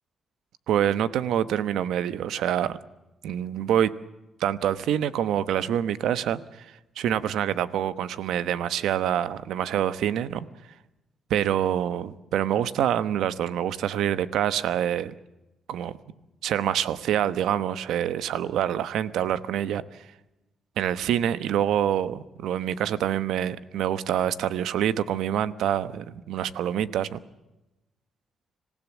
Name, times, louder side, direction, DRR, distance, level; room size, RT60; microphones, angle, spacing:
voice 1, 0.7-2.8 3.2-3.9 4.4-10.5 11.3-15.1 15.7-15.9 16.4-19.8 20.8-27.2, right 10 dB, 85° right, 14 dB, 1.1 m, -26 dB
26.5 x 16.5 x 7.4 m, 0.97 s
cardioid pair, 110°, 0 cm